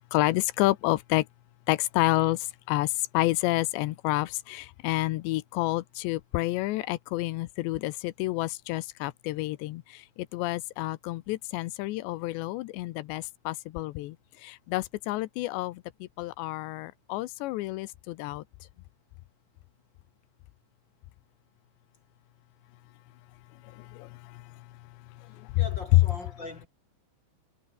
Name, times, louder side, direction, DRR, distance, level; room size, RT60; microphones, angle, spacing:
voice 1, 0.1-1.3 1.7-10.0 10.3-14.2 14.4-18.4 23.7-24.4 25.4-25.6 25.9-26.0, left 18 dB, 75° left, 2.8 m, -29 dB
voice 2, 25.3-26.7, left 2 dB, 25° left, 3.4 m, -41 dB
omnidirectional pair, 5.5 m